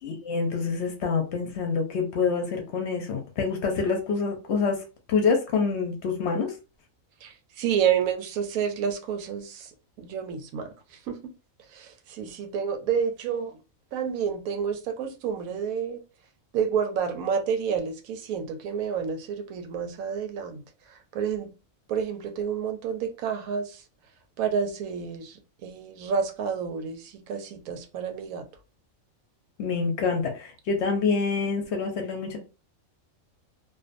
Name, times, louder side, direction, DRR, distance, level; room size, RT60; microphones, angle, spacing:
voice 1, 0.0-4.8 5.1-6.5 29.6-32.4, left 5 dB, 65° left, 0.8 m, -26 dB
voice 2, 7.2-9.7 10.0-10.7 11.1-11.2 11.7-13.6 13.9-16.0 16.5-20.6 20.9-21.5 21.9-23.8 24.4-28.4, right 7 dB, 90° right, 1.0 m, -29 dB
2.5 x 2.2 x 2.4 m
omnidirectional pair, 1.4 m